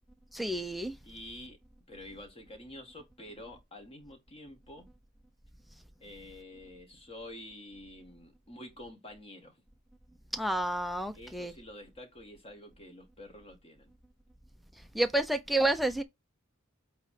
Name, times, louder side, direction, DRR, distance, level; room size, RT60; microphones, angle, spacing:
voice 1, 0.3-1.0 10.3-11.5 14.9-16.0, right 1 dB, ahead, 0.8 m, -29 dB
voice 2, 1.0-1.6 1.9-4.9 6.0-9.6 11.1-13.9, left 1 dB, 30° left, 2.1 m, -48 dB
8.1 x 3.4 x 5.0 m
head